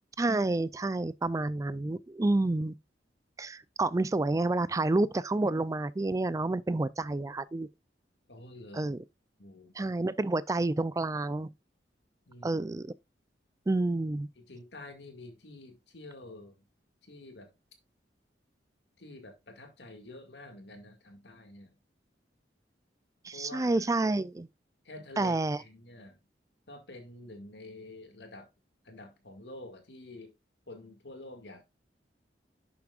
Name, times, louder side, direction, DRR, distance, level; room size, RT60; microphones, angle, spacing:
voice 1, 0.2-2.7 3.4-7.7 8.7-9.0 9.8-11.5 12.4-12.9 13.7-14.3 23.2-24.5 25.2-25.6, right 2 dB, 20° right, 0.3 m, -29 dB
voice 2, 8.3-8.9 9.4-9.7 12.3-12.6 14.5-16.5 17.0-17.5 19.0-21.7 23.3-23.8 24.8-26.2 26.7-28.5 28.8-30.3 30.7-31.6, left 2 dB, 70° left, 2.1 m, -48 dB
11.0 x 7.1 x 2.4 m
head